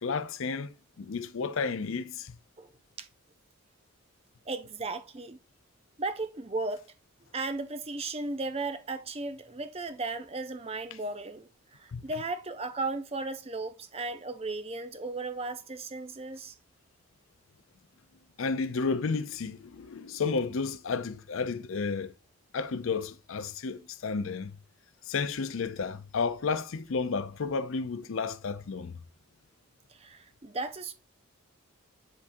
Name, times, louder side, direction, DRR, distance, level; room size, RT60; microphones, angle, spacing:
voice 1, 0.0-2.4 11.9-12.0 18.4-22.1 22.5-24.6 25.1-29.0, left 4 dB, 65° left, 0.5 m, -32 dB
voice 2, 4.5-5.4 6.0-6.9 7.2-16.5 29.9-30.9, right 3 dB, 25° right, 0.6 m, -36 dB
10.0 x 3.6 x 2.6 m
head